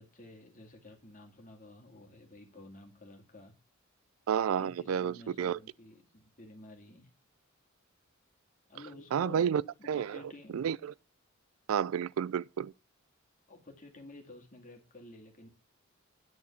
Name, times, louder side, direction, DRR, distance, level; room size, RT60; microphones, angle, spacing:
voice 1, 0.0-3.5 4.6-7.1 8.7-9.5 9.8-10.6 13.5-15.5, left 2 dB, 40° left, 2.2 m, -51 dB
voice 2, 4.3-5.6 9.1-9.6 9.9-10.2 10.5-10.9 11.7-12.7, right 8 dB, 90° right, 0.3 m, -30 dB
9.9 x 4.3 x 7.0 m
head